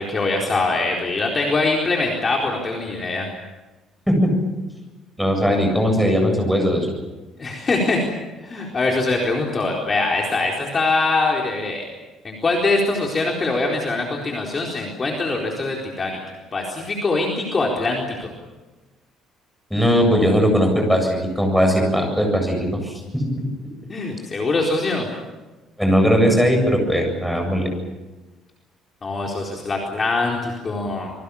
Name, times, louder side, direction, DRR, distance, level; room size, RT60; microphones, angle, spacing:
voice 1, 0.0-3.3 7.4-8.0 8.4-11.8 12.2-16.2 16.5-18.3 23.9-25.1 29.0-31.1, left 3 dB, 25° left, -1 dB, 4.3 m, -23 dB
voice 2, 5.2-6.9 19.7-23.4 25.8-27.7, equal, ahead, 3 dB, 7.7 m, -19 dB
27.5 x 23.0 x 7.1 m, 1.1 s
cardioid pair, 155°, 0 cm